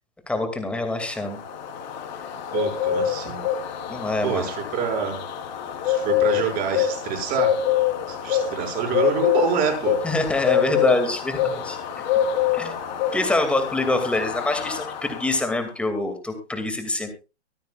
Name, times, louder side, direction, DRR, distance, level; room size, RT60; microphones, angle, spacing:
voice 1, 0.3-1.4 3.9-4.5 10.0-11.8 12.5-12.7 13.1-17.2, left 2 dB, 5° left, 6 dB, 2.4 m, -25 dB
Bird, 0.9-15.6, left 10 dB, 40° left, 3.8 m, -26 dB
voice 2, 2.5-3.4 4.2-5.2 5.8-7.5 8.1-9.9, right 7 dB, 25° right, 2 dB, 6.5 m, -26 dB
24.0 x 9.1 x 2.4 m, 0.29 s
hypercardioid pair, 150°, 34 cm